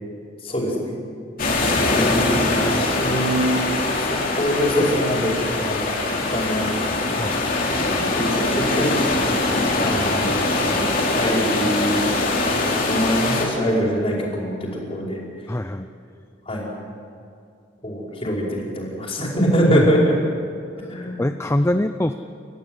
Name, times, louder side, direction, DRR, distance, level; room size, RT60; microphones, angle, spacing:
voice 1, 0.4-1.0 1.7-3.4 4.0-5.9 6.3-6.8 8.2-9.0 9.8-12.1 12.5-15.2 16.5-16.7 17.8-20.1 20.9-21.2, equal, 30° left, -3 dB, 5.4 m, -24 dB
sound 1, 1.4-13.5, left 2 dB, 50° left, 3.5 m, -22 dB
voice 2, 15.5-15.9 19.7-19.9 20.8-20.9 21.2-22.1, left 1 dB, 15° left, 8 dB, 0.5 m, -23 dB
30.0 x 14.5 x 8.1 m, 2.4 s
head